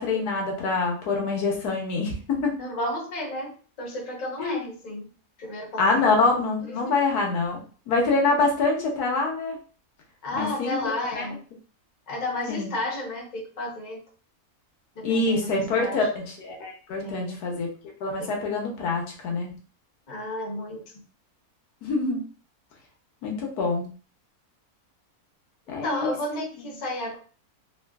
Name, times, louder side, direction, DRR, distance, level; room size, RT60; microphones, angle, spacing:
voice 1, 0.0-2.6 4.4-4.7 5.8-9.6 10.3-10.8 11.1-11.3 12.5-12.7 15.0-17.7 18.0-19.5 21.8-22.2 23.2-23.9 25.7-26.4, left 3 dB, 85° left, 0 dB, 1.3 m, -25 dB
voice 2, 2.6-5.1 5.4-6.1 6.7-7.0 10.2-11.4 12.1-14.0 15.0-16.1 17.0-17.5 18.2-18.3 20.1-20.8 25.8-27.2, left 1 dB, 40° left, -1 dB, 0.7 m, -32 dB
3.5 x 2.3 x 2.3 m, 0.39 s
omnidirectional pair, 1.6 m